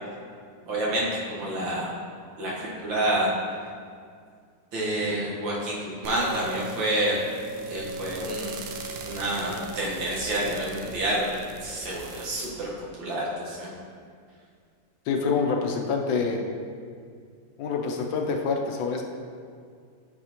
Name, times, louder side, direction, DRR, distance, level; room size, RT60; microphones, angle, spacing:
voice 1, 0.7-1.9 2.4-3.3 4.7-7.2 7.7-8.5 9.1-11.3 11.6-12.7 13.0-13.7, right 1 dB, 90° right, -5 dB, 2.1 m, -28 dB
sound 1, 6.0-12.5, right 3 dB, 70° right, 0.9 m, -38 dB
voice 2, 15.1-16.4 17.6-19.0, left 5 dB, 85° left, 2 dB, 1.4 m, -26 dB
9.3 x 4.2 x 2.9 m, 2.2 s
omnidirectional pair, 2.0 m